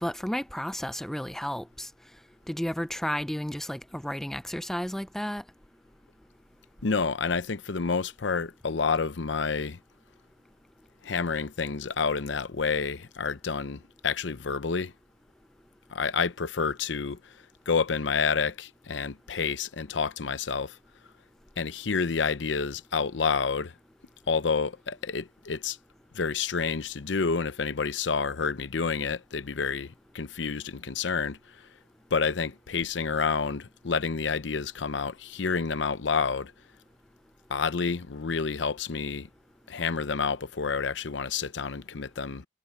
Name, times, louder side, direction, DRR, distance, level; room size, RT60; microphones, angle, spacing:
voice 1, 0.0-1.9 2.5-5.4, equal, ahead, 0.3 m, -32 dB
voice 2, 6.8-9.8 11.0-14.9 15.9-17.3 17.7-20.8 21.6-23.7 24.3-25.8 26.1-31.6 32.1-36.5 37.5-39.3 39.7-42.5, left 5 dB, 80° left, 0.7 m, -29 dB
head